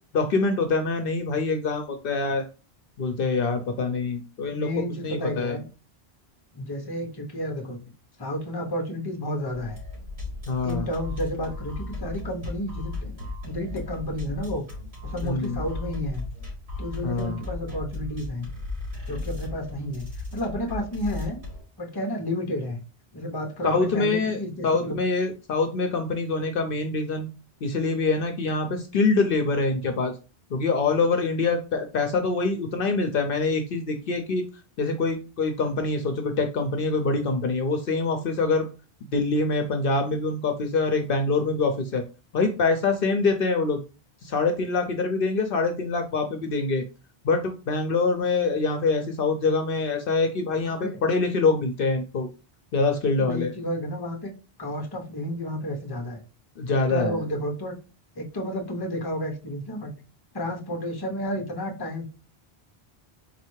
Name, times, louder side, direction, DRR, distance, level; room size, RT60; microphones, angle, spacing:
voice 1, 0.1-2.5 3.0-4.7 5.0-5.6 10.5-10.9 15.2-15.6 17.0-17.4 23.6-27.3 27.6-30.1 30.5-34.4 34.8-38.7 39.1-42.0 42.3-43.8 44.2-46.8 47.2-52.3 52.7-53.5 56.6-57.2, left 3 dB, 65° left, 5 dB, 0.8 m, -25 dB
voice 2, 4.5-5.7 6.5-7.8 8.2-9.8 10.6-14.7 15.0-16.2 16.8-18.5 19.1-21.4 21.8-22.8 23.1-25.0 50.6-51.0 53.2-54.3 54.6-56.2 56.7-57.8 58.2-59.9 60.3-62.1, equal, 25° left, 2 dB, 0.8 m, -31 dB
sound 1, 9.5-21.6, left 2 dB, 80° right, 2.8 m, -36 dB
4.1 x 3.2 x 3.1 m, 0.32 s
omnidirectional pair, 1.1 m